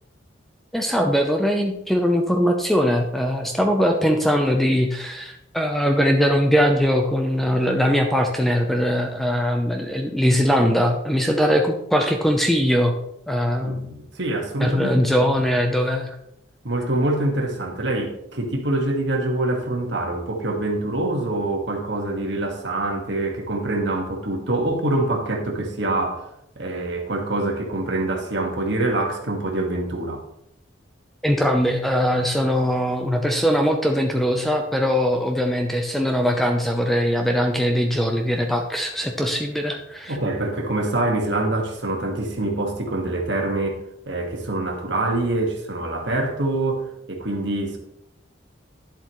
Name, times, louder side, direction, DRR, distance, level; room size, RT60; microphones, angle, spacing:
voice 1, 0.7-12.9 13.3-13.9 14.6-16.1 31.2-40.2, equal, ahead, 3 dB, 0.7 m, -21 dB
voice 2, 13.6-15.1 16.6-26.3 26.5-30.2 40.1-43.8 44.0-47.8, right 2 dB, 60° right, 2 dB, 1.7 m, -25 dB
10.5 x 7.8 x 3.1 m, 0.77 s
head